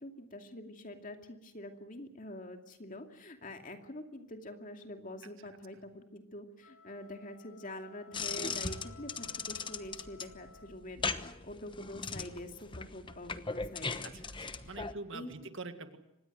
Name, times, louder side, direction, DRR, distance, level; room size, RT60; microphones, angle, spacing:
voice 1, 0.0-14.2 14.6-14.8 15.1-15.5, left 1 dB, 40° left, 5 dB, 2.5 m, -46 dB
sound 1, 6.5-11.1, left 6 dB, 85° left, 5.1 m, -57 dB
sound 2, 8.1-14.9, left 4 dB, 25° left, 1.0 m, -39 dB
voice 2, 14.0-16.0, right 3 dB, 60° right, 9 dB, 1.9 m, -45 dB
25.5 x 20.0 x 7.8 m, 0.89 s
head